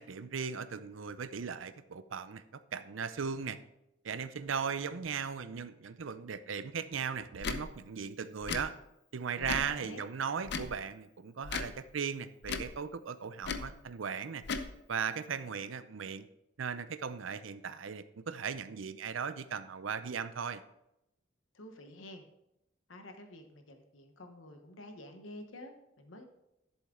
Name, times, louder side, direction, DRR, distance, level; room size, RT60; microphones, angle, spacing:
voice 1, 0.0-3.6 4.0-8.7 9.1-14.4 14.9-16.3 16.6-20.6, right 6 dB, 85° right, 13 dB, 0.6 m, -37 dB
Tick / Tick-tock, 7.4-7.6 8.4-8.6 9.4-9.7 10.4-10.7 11.4-11.7 12.4-12.7 13.4-13.7 14.4-14.7, left 4 dB, 60° left, 0.7 m, -36 dB
voice 2, 9.4-10.0 21.5-22.2 22.9-26.3, left 1 dB, 85° left, 5 dB, 1.1 m, -49 dB
11.5 x 7.3 x 3.7 m, 0.86 s
head